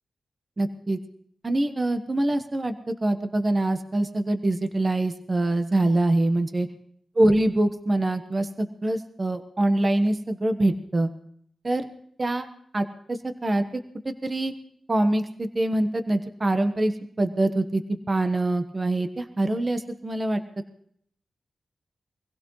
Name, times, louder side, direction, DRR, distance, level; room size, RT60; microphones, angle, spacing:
voice 1, 0.6-1.0 1.4-6.7 7.2-11.1 11.6-11.9 12.2-12.5 12.7-14.5 14.9-20.4, right 1 dB, 35° right, 8 dB, 1.3 m, -24 dB
24.0 x 16.5 x 3.2 m, 0.66 s
cardioid pair, 75°, 0 cm